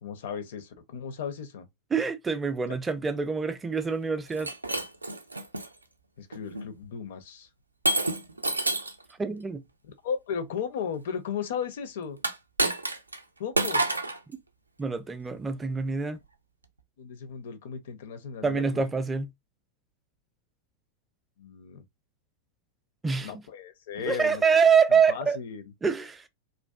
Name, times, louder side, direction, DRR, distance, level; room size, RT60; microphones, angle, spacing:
voice 1, 0.0-1.7 6.2-7.5 10.0-12.2 13.4-13.8 17.0-18.8 21.4-21.8 23.2-24.4 24.9-25.7, left 7 dB, 55° left, 0.5 m, -35 dB
voice 2, 1.9-4.5 9.2-9.6 14.8-16.2 18.4-19.3 23.0-23.3 24.1-25.4 25.8-26.2, right 6 dB, 15° right, 0.4 m, -25 dB
Shatter, 4.3-5.7 6.3-6.7 7.9-9.0 12.2-13.2 13.6-14.2, right 2 dB, 80° right, 0.3 m, -28 dB
2.5 x 2.3 x 2.3 m
figure-of-eight pair, 90°, 0 cm